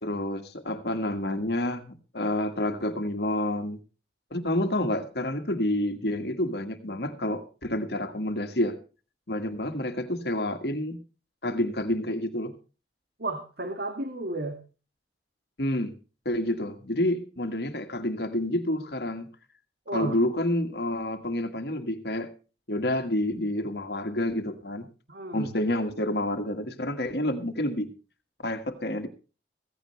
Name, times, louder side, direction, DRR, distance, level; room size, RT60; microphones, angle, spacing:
voice 1, 0.0-3.8 4.3-8.8 9.3-11.0 11.4-12.5 15.6-16.0 16.3-19.3 19.9-22.3 22.7-24.9 25.3-27.9 28.4-29.1, left 1 dB, 60° left, 7 dB, 1.8 m, -29 dB
voice 2, 13.2-14.6 19.9-20.2 25.1-25.5, right 2 dB, 60° right, 6 dB, 2.0 m, -32 dB
16.0 x 15.5 x 3.2 m, 0.35 s
head